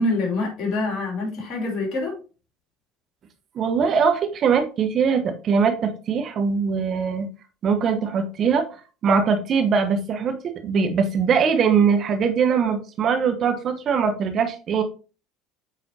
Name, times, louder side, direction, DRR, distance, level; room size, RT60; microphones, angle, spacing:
voice 1, 0.0-2.1, left 2 dB, 50° left, 1 dB, 2.9 m, -25 dB
voice 2, 3.5-7.3 7.6-8.6 9.0-14.8, right 6 dB, 45° right, 7 dB, 1.0 m, -21 dB
8.3 x 4.1 x 2.8 m, 0.35 s
hypercardioid pair, 65°, 0 cm